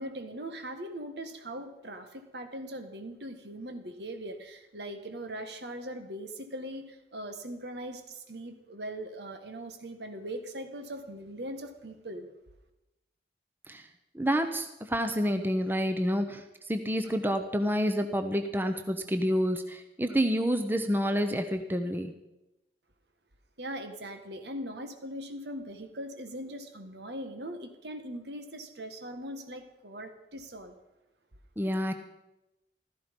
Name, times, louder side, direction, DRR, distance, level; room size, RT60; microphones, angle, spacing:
voice 1, 0.0-12.3 23.6-30.7, right 1 dB, 75° right, 1.7 m, -40 dB
voice 2, 14.1-16.4 16.7-22.1 31.6-31.9, equal, 10° right, 0.8 m, -28 dB
15.5 x 13.5 x 5.3 m
head